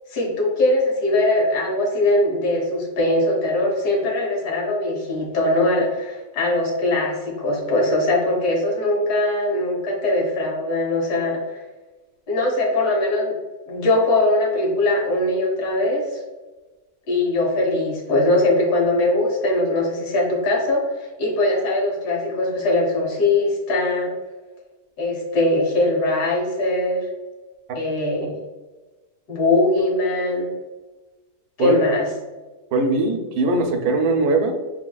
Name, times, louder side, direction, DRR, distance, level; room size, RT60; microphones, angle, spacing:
voice 1, 0.1-11.6 12.3-13.3 13.7-16.1 17.1-24.1 25.0-27.1 27.7-28.4 29.3-30.5 31.6-32.1, left 2 dB, 85° left, -1 dB, 1.6 m, -21 dB
voice 2, 32.7-34.6, right 2 dB, 75° right, 5 dB, 1.1 m, -20 dB
5.0 x 3.3 x 2.3 m, 1.2 s
omnidirectional pair, 1.7 m